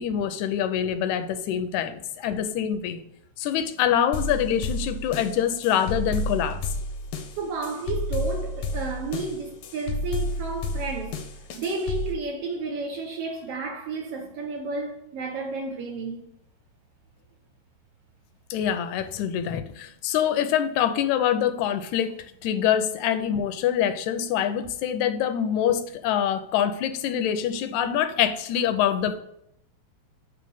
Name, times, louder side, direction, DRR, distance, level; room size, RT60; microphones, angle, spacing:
voice 1, 0.0-3.0 3.4-6.6 18.5-29.2, left 9 dB, 90° left, 2.0 m, -25 dB
sound 1, 4.1-12.1, left 2 dB, 70° left, 1.3 m, -31 dB
voice 2, 7.4-11.2 11.6-16.3, right 3 dB, 65° right, 1.6 m, -32 dB
8.9 x 3.2 x 5.5 m
omnidirectional pair, 3.3 m